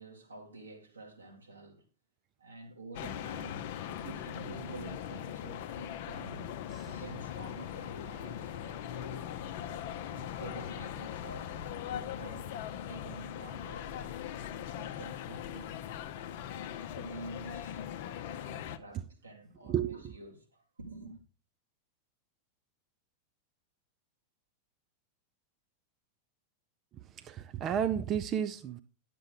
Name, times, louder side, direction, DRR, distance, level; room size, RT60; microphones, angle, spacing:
voice 1, 0.0-1.8 2.4-3.7 4.0-9.4 10.1-14.2 14.7-15.9 16.5-17.8 18.2-21.2, right 3 dB, 75° right, 1.9 m, -49 dB
sound 1, 2.9-18.8, left 10 dB, 50° left, 0.6 m, -40 dB
voice 2, 19.7-20.1 26.9-28.8, right 9 dB, 30° right, 0.4 m, -33 dB
9.9 x 6.7 x 3.8 m
figure-of-eight pair, 90°, 0 cm